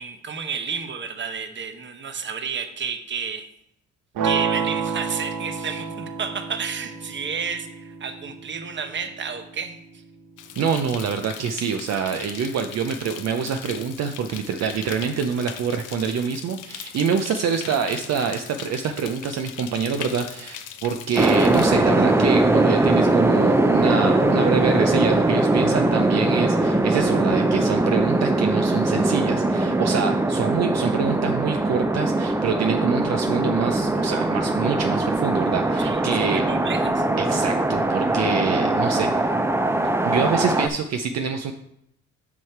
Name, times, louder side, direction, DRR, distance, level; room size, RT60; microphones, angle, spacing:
voice 1, 0.0-3.5 4.2-9.8 35.8-37.1, right 6 dB, 40° right, 8 dB, 0.9 m, -31 dB
sound 1, 4.2-10.2, right 6 dB, 75° right, 1.0 m, -30 dB
sound 2, 10.4-21.7, left 9 dB, 90° left, 0.7 m, -39 dB
voice 2, 10.6-36.4 37.2-39.3 40.0-41.5, right 6 dB, 60° right, 6 dB, 0.6 m, -26 dB
sound 3, 21.2-40.7, right 2 dB, 10° right, 0.5 m, -21 dB
6.1 x 5.7 x 4.6 m, 0.78 s
cardioid pair, 90°, 30 cm